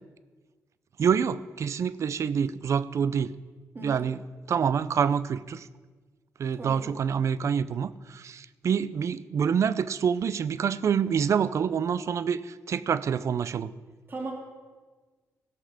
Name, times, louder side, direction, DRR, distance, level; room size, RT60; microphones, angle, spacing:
voice 1, 1.0-3.3 3.8-4.2 4.5-5.7 6.4-13.7, right 7 dB, 60° right, 16 dB, 0.5 m, -27 dB
voice 2, 3.7-4.1 6.6-6.9 14.1-14.3, right 2 dB, 40° right, 1 dB, 2.1 m, -37 dB
16.5 x 5.8 x 6.4 m, 1.4 s
cardioid pair, 115°, 6 cm